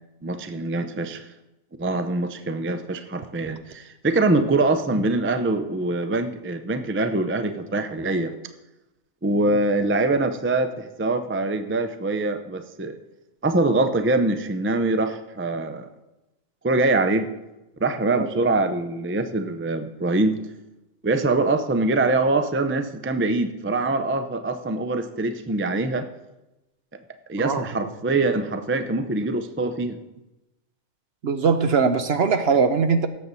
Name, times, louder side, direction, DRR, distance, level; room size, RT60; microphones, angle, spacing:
voice 1, 0.2-1.2 1.8-8.3 9.2-13.0 13.4-15.9 16.6-17.3 17.8-20.4 21.0-26.1 27.3-30.0, right 2 dB, 15° right, 8 dB, 0.4 m, -24 dB
voice 2, 27.4-27.9 31.2-33.1, right 5 dB, 55° right, 9 dB, 0.9 m, -21 dB
17.5 x 7.5 x 4.1 m, 0.97 s
omnidirectional pair, 1.4 m